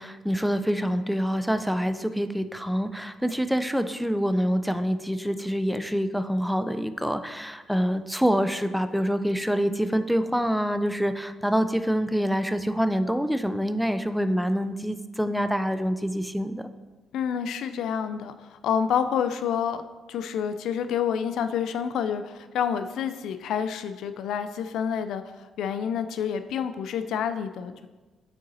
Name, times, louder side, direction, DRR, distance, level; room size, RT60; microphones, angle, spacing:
voice 1, 0.0-16.7, equal, ahead, 10 dB, 0.4 m, -26 dB
voice 2, 17.1-19.8 20.1-25.2 25.6-27.9, left 8 dB, 80° left, 10 dB, 0.3 m, -28 dB
6.5 x 3.9 x 4.1 m, 1.2 s
cardioid pair, 90°, 0 cm